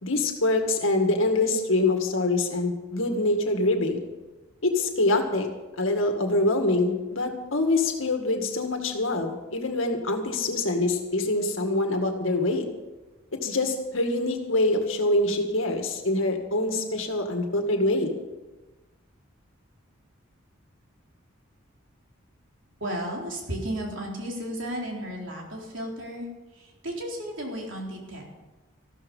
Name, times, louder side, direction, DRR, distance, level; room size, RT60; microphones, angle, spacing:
voice 1, 0.0-4.0 4.6-5.5 5.8-12.6 13.4-18.1, left 2 dB, 70° left, 4 dB, 2.1 m, -25 dB
voice 2, 22.8-26.3 26.5-28.2, equal, 60° right, -1 dB, 3.9 m, -34 dB
14.5 x 13.0 x 5.6 m, 1.1 s
head